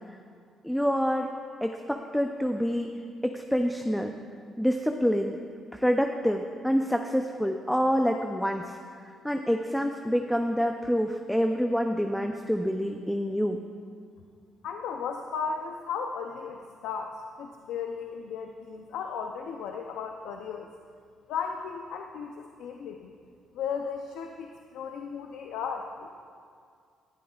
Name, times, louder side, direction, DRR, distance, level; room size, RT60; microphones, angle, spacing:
voice 1, 0.6-1.3 1.6-2.9 3.2-4.1 4.6-5.4 5.7-8.8 9.2-13.6, equal, ahead, 4 dB, 0.6 m, -27 dB
voice 2, 14.6-20.7 21.3-23.1 23.5-26.1, left 6 dB, 90° left, 3 dB, 0.6 m, -35 dB
18.0 x 11.5 x 2.4 m, 2.2 s
cardioid pair, 90°, 0 cm